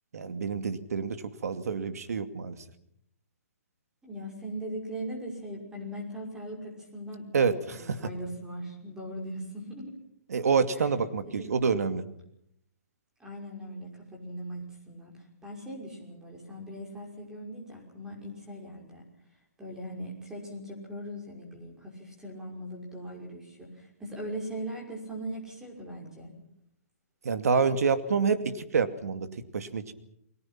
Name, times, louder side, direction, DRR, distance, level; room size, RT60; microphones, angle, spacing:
voice 1, 0.1-2.6 7.3-8.0 10.3-12.0 27.2-29.3 29.5-29.9, right 5 dB, 75° right, 10 dB, 2.4 m, -27 dB
voice 2, 4.0-7.3 7.8-10.0 11.4-11.6 13.2-19.0 19.6-26.3, right 1 dB, 5° right, 0 dB, 5.8 m, -40 dB
29.5 x 21.5 x 6.0 m, 0.75 s
hypercardioid pair, 160°, 8 cm